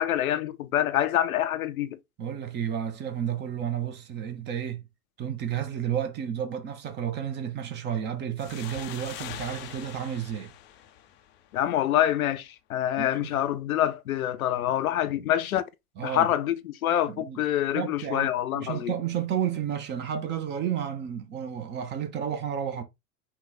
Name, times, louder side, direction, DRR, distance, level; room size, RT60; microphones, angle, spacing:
voice 1, 0.0-2.0 11.5-15.6 16.0-18.9, left 12 dB, 65° left, 0.6 m, -26 dB
voice 2, 2.2-4.9 5.2-10.5 13.0-13.3 16.0-16.3 17.1-17.4 17.7-22.8, right 9 dB, 25° right, 0.6 m, -31 dB
sound 1, 8.4-11.8, left 12 dB, 25° left, 0.5 m, -43 dB
5.8 x 2.3 x 3.6 m
figure-of-eight pair, 85°, 46 cm